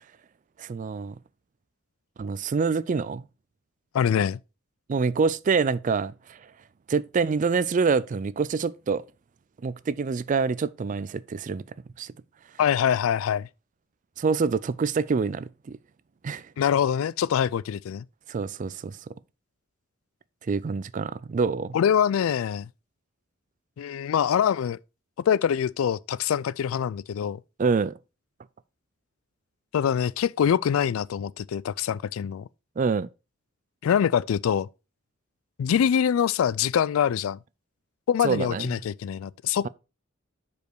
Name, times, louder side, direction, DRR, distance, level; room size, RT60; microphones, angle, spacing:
voice 1, 0.6-1.2 2.2-3.2 4.9-6.4 6.9-9.0 9.6-11.6 12.0-12.1 14.2-15.8 16.2-16.5 18.3-19.0 20.5-21.8 27.6-28.0 32.8-33.1 38.2-38.7, right 5 dB, 40° right, 0.3 m, -26 dB
voice 2, 3.9-4.4 12.6-13.5 16.6-18.0 21.7-22.7 23.8-24.8 25.3-27.4 29.7-32.5 33.8-34.7 35.6-37.4 38.1-39.7, left 8 dB, 85° left, 0.3 m, -24 dB
6.8 x 5.1 x 4.6 m
head